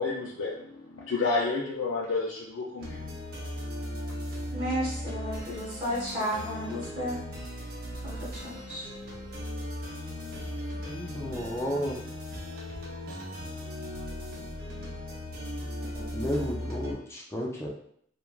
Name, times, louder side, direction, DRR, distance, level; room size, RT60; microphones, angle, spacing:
voice 1, 0.0-3.0, left 4 dB, 80° left, -4 dB, 0.4 m, -30 dB
sound 1, 2.8-16.9, left 1 dB, 50° right, 0.6 m, -37 dB
voice 2, 4.5-7.2 8.0-8.9, equal, 5° right, -13 dB, 1.1 m, -33 dB
voice 3, 10.8-12.0 15.9-17.7, equal, 15° left, -2 dB, 0.3 m, -33 dB
3.1 x 2.3 x 2.3 m, 0.66 s
head